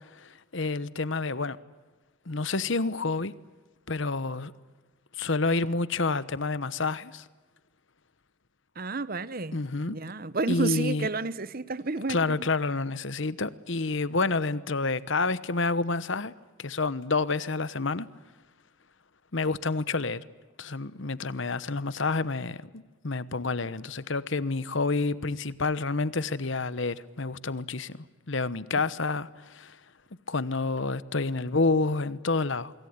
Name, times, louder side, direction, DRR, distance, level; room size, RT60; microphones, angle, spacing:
voice 1, 0.1-1.6 2.3-3.3 3.9-4.5 5.1-7.2 9.5-10.0 10.5-11.1 12.1-16.3 16.6-18.1 19.3-20.2 20.6-29.8 30.3-32.7, left 3 dB, 60° left, 1.1 m, -29 dB
voice 2, 8.8-9.6 9.9-12.5, right 3 dB, 45° right, 1.0 m, -31 dB
25.5 x 23.5 x 9.5 m
head